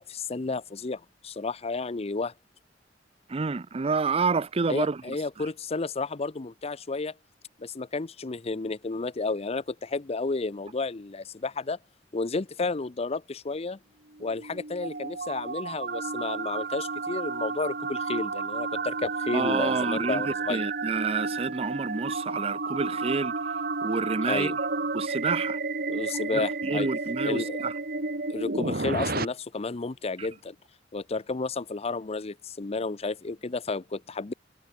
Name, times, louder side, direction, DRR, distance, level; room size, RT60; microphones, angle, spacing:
voice 1, 0.0-2.3 4.7-7.1 7.6-11.8 12.1-13.8 14.2-20.6 24.2-24.6 25.9-26.9 27.2-27.6 28.3-30.6 30.9-34.3, left 3 dB, 35° left, 0.6 m, -32 dB
voice 2, 3.3-5.5 19.3-23.3 23.8-24.5 24.9-25.6 26.3-27.7 30.2-30.3, right 4 dB, 30° right, 0.5 m, -29 dB
sound 1, 14.2-29.2, right 3 dB, 55° right, 2.7 m, -31 dB
head